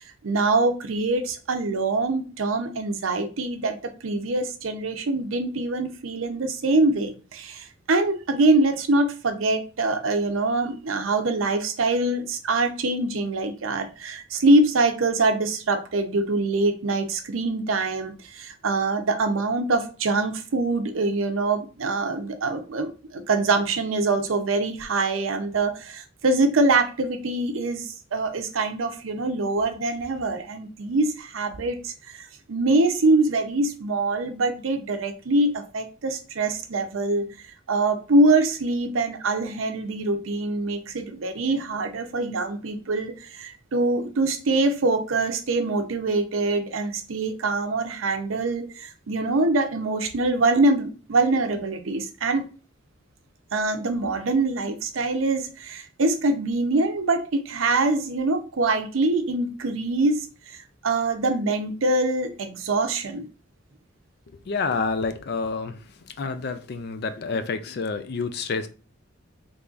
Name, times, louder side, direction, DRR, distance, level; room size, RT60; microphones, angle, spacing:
voice 1, 0.0-52.4 53.5-63.3, right 2 dB, 85° right, 0.6 m, -24 dB
voice 2, 64.5-65.8 66.2-68.7, left 4 dB, 55° left, 0.4 m, -28 dB
3.8 x 3.3 x 2.4 m
head